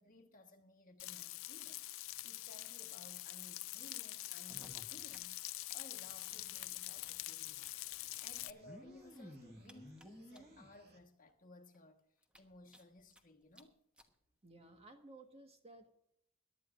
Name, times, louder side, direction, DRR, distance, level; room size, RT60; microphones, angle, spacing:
voice 1, 0.0-5.4 5.7-12.0 12.4-13.8, left 2 dB, 40° left, 1.4 m, -59 dB
Frying (food), 1.0-8.5, left 17 dB, 65° left, 0.4 m, -45 dB
sound 1, 4.3-5.7 6.0-6.1 6.3-6.4 7.4-7.5 8.4-10.7 11.3-11.4 11.7-11.8 12.2-13.2 13.5-13.6 14.0-14.1 14.9-15.0, equal, 5° right, 1.2 m, -56 dB
sound 2, 6.0-11.0, right 2 dB, 45° right, 2.2 m, -69 dB
voice 2, 14.4-15.9, right 2 dB, 30° right, 1.5 m, -57 dB
22.5 x 11.5 x 2.5 m
head